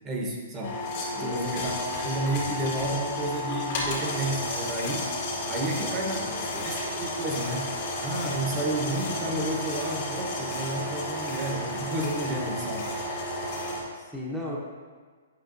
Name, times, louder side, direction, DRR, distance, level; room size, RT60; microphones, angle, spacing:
voice 1, 0.0-0.8 1.1-5.1 5.4-6.3 6.6-12.9, right 1 dB, 25° right, -1 dB, 1.1 m, -31 dB
sound 1, 0.6-13.8, left 1 dB, 50° left, 1.9 m, -32 dB
voice 2, 1.2-1.5 5.8-6.7 13.9-14.6, left 1 dB, ahead, -5 dB, 1.0 m, -36 dB
8.2 x 5.8 x 2.6 m, 1.5 s
hypercardioid pair, 125°, 0 cm